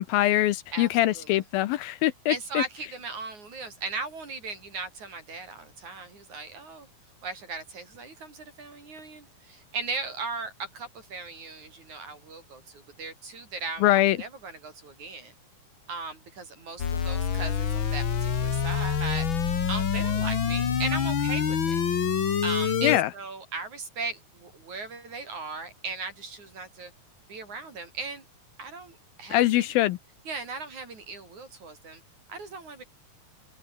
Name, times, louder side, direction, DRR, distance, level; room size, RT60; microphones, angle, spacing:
voice 1, 0.0-2.6 13.8-14.2 22.8-23.1 29.3-30.0, left 15 dB, 75° left, 2.6 m, -23 dB
voice 2, 0.7-1.4 2.3-6.9 7.2-15.3 15.9-19.3 19.7-21.8 22.4-26.9 27.3-28.3 28.6-29.7 30.3-32.0 32.3-32.8, right 4 dB, 50° right, 7.2 m, -37 dB
sound 1, 16.8-23.0, left 7 dB, 40° left, 1.9 m, -26 dB
open air
omnidirectional pair, 4.4 m